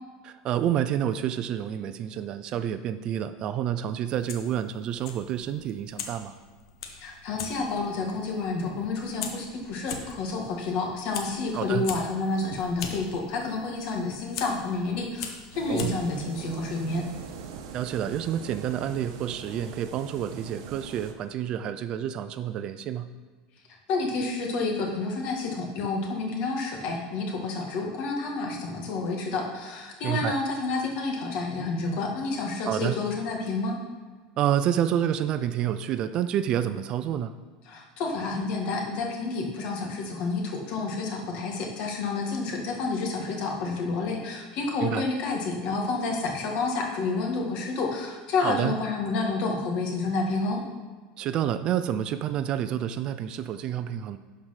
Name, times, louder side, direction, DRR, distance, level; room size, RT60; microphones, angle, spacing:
voice 1, 0.2-6.3 11.5-11.9 15.7-16.0 17.7-23.1 30.0-30.4 32.7-33.0 34.4-37.3 44.8-45.1 48.4-48.7 51.2-54.2, right 10 dB, 35° right, 11 dB, 0.4 m, -28 dB
Fire, 4.1-17.5, left 6 dB, 80° left, 1.2 m, -42 dB
voice 2, 7.0-17.1 23.9-33.8 37.7-50.6, left 3 dB, 50° left, 1 dB, 1.9 m, -29 dB
sound 1, 15.5-21.1, right 6 dB, 75° right, 1.1 m, -42 dB
11.5 x 4.7 x 5.8 m, 1.5 s
supercardioid pair, 155°, 2 cm